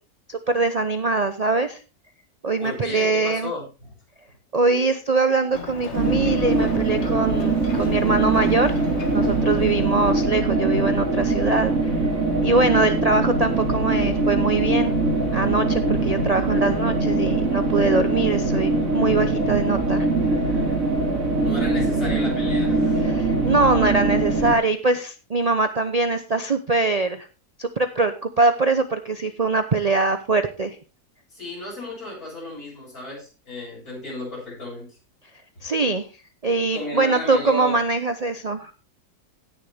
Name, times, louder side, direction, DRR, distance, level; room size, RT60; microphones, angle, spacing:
voice 1, 0.3-1.8 2.4-3.5 4.5-8.8 9.1-11.9 12.4-14.9 15.3-20.1 23.0-27.3 27.6-30.8 35.6-36.1 36.4-38.7, right 3 dB, 40° right, 9 dB, 0.6 m, -22 dB
voice 2, 2.6-3.9 21.4-23.0 31.3-35.0 36.7-37.8, left 1 dB, 65° left, -4 dB, 8.2 m, -34 dB
Ocean, 5.5-10.4, left 5 dB, 45° left, 1.6 m, -36 dB
sound 1, 5.9-24.5, right 2 dB, 60° right, 2.5 m, -22 dB
17.0 x 6.8 x 3.4 m, 0.32 s
omnidirectional pair, 1.7 m